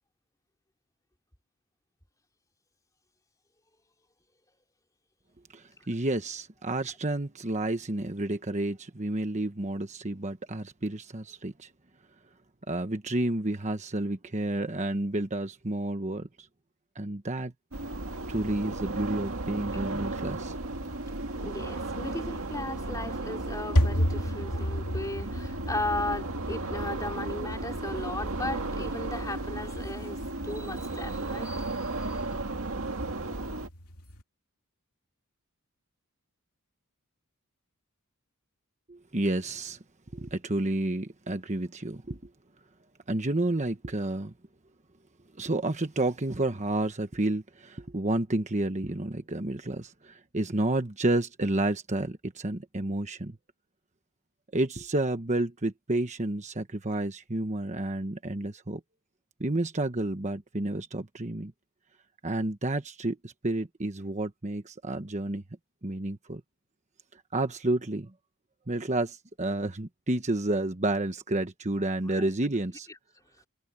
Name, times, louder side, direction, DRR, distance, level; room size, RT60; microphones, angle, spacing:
voice 1, 5.5-11.7 12.7-16.5 16.9-17.5 18.3-20.5 21.3-21.4 38.9-39.8 40.1-42.2 43.1-44.3 45.3-53.4 54.5-58.8 59.4-61.5 62.2-65.4 65.8-66.4 67.1-68.1 68.7-72.9, right 2 dB, 30° right, 1.2 m, -30 dB
sound 1, 17.7-33.7, right 2 dB, 65° right, 2.0 m, -35 dB
voice 2, 21.3-32.4 72.1-72.2, left 2 dB, 15° left, 3.1 m, -36 dB
sound 2, 22.8-34.2, equal, 85° left, 2.6 m, -34 dB
head